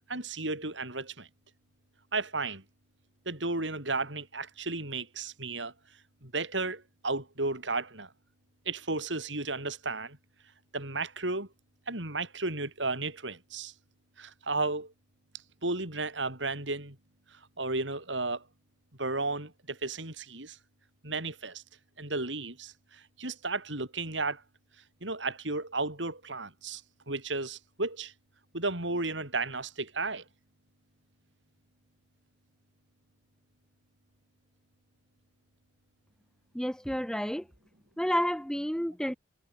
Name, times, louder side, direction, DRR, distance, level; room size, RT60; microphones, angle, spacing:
voice 1, 0.1-1.3 2.1-2.6 3.3-5.7 6.2-8.1 8.7-10.2 10.7-11.5 11.9-13.7 14.2-14.9 15.6-17.0 17.6-18.4 19.0-20.6 21.0-21.6 22.0-22.7 23.2-24.4 25.0-26.8 27.1-28.1 28.5-30.2, right 3 dB, 85° right, 7.0 m, -33 dB
voice 2, 36.5-37.4 38.0-39.2, equal, 5° left, 1.7 m, -30 dB
head